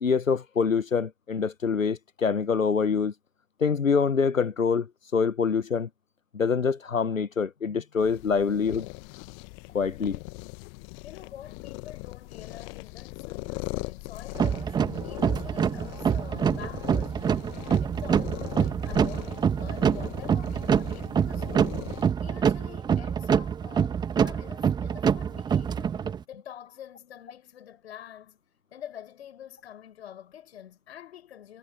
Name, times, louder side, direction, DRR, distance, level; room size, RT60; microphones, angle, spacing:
voice 1, 0.0-3.1 3.6-5.9 6.3-8.9 9.7-10.2, left 5 dB, 80° left, 1.1 m, -25 dB
sound 1, 8.0-22.1, left 36 dB, 25° left, 1.2 m, -40 dB
voice 2, 11.0-21.8 22.2-25.9 26.3-28.4 28.7-31.6, left 10 dB, 55° left, 7.9 m, -46 dB
sound 2, 14.4-26.2, right 7 dB, 10° right, 1.5 m, -26 dB
figure-of-eight pair, 120°, 39 cm